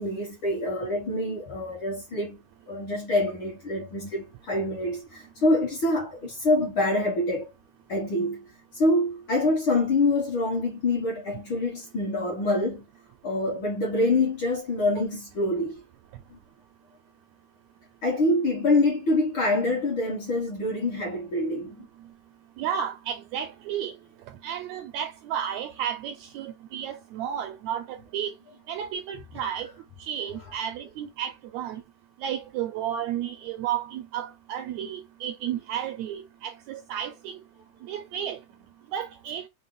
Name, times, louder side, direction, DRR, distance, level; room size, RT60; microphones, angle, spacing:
voice 1, 0.0-2.4 2.7-7.5 7.9-8.5 8.7-12.8 13.2-15.8 16.3-16.4 18.0-21.8, left 2 dB, 55° left, 1.5 m, -26 dB
voice 2, 22.6-23.9 24.4-28.3 28.7-29.7 30.0-31.8 32.2-37.4 37.8-38.4 38.9-39.4, right 9 dB, 80° right, 1.6 m, -32 dB
5.3 x 2.2 x 3.5 m
omnidirectional pair, 3.5 m